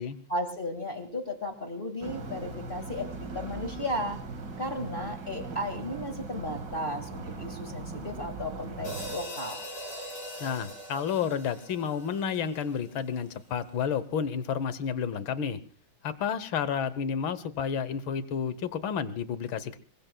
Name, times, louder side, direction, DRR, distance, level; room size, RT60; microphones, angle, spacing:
voice 1, 0.3-4.2 4.6-9.7, left 1 dB, 25° left, 6 dB, 2.0 m, -35 dB
sound 1, 2.0-9.2, right 3 dB, 55° right, 2.5 m, -39 dB
sound 2, 8.8-13.2, equal, 90° left, 6.5 m, -41 dB
voice 2, 10.4-15.6 16.0-19.8, left 7 dB, 70° left, 14 dB, 1.7 m, -31 dB
26.5 x 22.0 x 2.3 m, 0.40 s
omnidirectional pair, 2.3 m